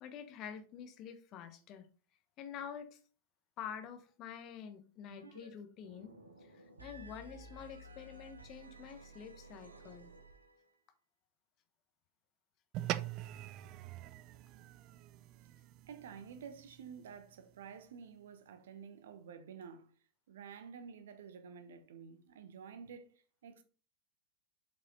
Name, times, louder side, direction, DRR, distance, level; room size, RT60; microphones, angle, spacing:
voice 1, 0.0-1.9 2.4-3.0 3.6-6.1 6.4-10.1, left 8 dB, 35° left, 1.1 m, -48 dB
sound 1, 5.1-5.5 5.7-10.7, right 1 dB, 80° right, 1.5 m, -55 dB
sound 2, 12.7-17.4, right 14 dB, 40° right, 0.5 m, -44 dB
voice 2, 15.9-19.9 20.3-23.6, right 7 dB, 60° right, 1.2 m, -51 dB
7.7 x 5.6 x 3.9 m
figure-of-eight pair, 90°, 0 cm